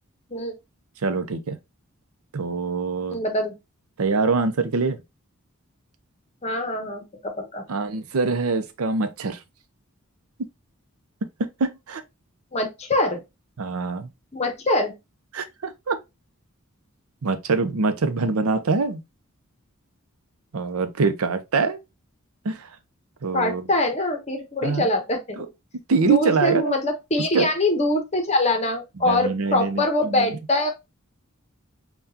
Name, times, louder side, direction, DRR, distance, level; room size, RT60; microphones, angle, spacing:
voice 1, 1.0-1.6 2.3-3.2 4.0-5.0 7.7-9.4 10.4-10.5 11.4-12.0 13.6-14.1 15.3-16.0 17.2-19.0 20.5-21.8 22.4-22.7 23.2-23.7 24.6-24.9 25.9-26.8 27.3-27.5 29.0-30.3, right 4 dB, 75° right, 0.6 m, -24 dB
voice 2, 3.1-3.6 6.4-7.7 12.5-13.2 14.3-14.9 23.3-25.4 26.0-30.7, left 1 dB, 30° left, 0.8 m, -24 dB
5.7 x 2.3 x 2.7 m
head